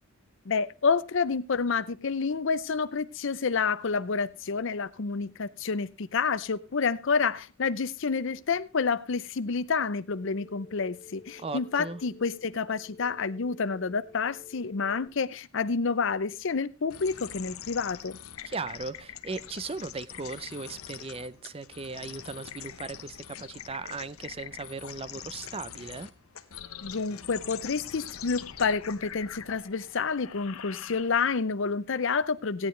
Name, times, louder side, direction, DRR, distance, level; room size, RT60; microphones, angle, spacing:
voice 1, 0.5-18.2 26.8-32.7, left 5 dB, 60° left, 0.6 m, -29 dB
Telephone, 10.1-15.1, left 4 dB, 35° left, 1.2 m, -51 dB
voice 2, 11.4-12.0 18.4-26.1, right 4 dB, 25° right, 0.5 m, -38 dB
sound 1, 16.9-31.4, left 9 dB, 90° left, 0.9 m, -43 dB
16.5 x 9.5 x 3.2 m
head